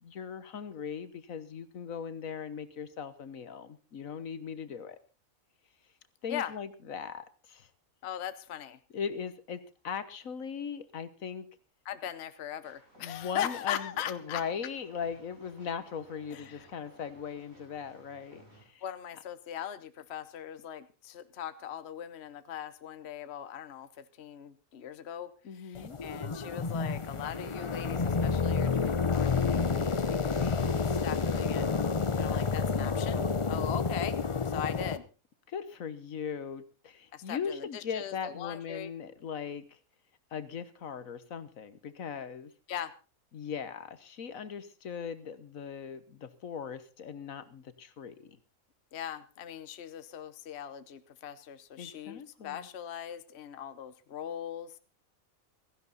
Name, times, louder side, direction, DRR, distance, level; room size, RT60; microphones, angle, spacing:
voice 1, 0.0-5.0 6.2-7.7 8.9-11.5 13.0-18.8 25.4-26.0 32.3-32.9 34.7-34.8 35.5-39.8 40.3-42.5 43.3-48.4 51.8-52.7, left 7 dB, 75° left, 13 dB, 1.5 m, -39 dB
voice 2, 8.0-8.8 11.8-14.4 16.3-16.7 18.8-30.7 31.0-31.7 32.2-34.2 34.4-35.0 37.1-38.9 42.7-42.9 48.9-54.7, left 10 dB, 55° left, 12 dB, 1.1 m, -40 dB
sound 1, 12.6-18.6, right 1 dB, 75° right, 8.6 m, -59 dB
sound 2, 25.7-35.0, left 5 dB, 30° left, 0.6 m, -29 dB
16.5 x 15.0 x 4.0 m, 0.33 s
omnidirectional pair, 1.4 m